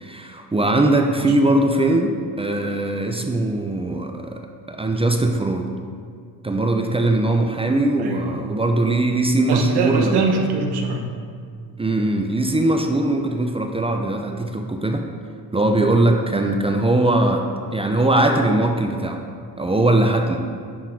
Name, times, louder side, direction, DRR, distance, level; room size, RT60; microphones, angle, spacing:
voice 1, 0.0-4.4 4.7-5.7 6.4-10.3 11.8-15.0 15.5-17.4 17.7-19.2 19.6-20.4, right 2 dB, 15° right, 3 dB, 0.5 m, -20 dB
voice 2, 8.0-8.4 9.5-11.0, right 4 dB, 75° right, 2 dB, 1.1 m, -23 dB
10.5 x 3.8 x 4.5 m, 2.2 s
cardioid pair, 100°, 39 cm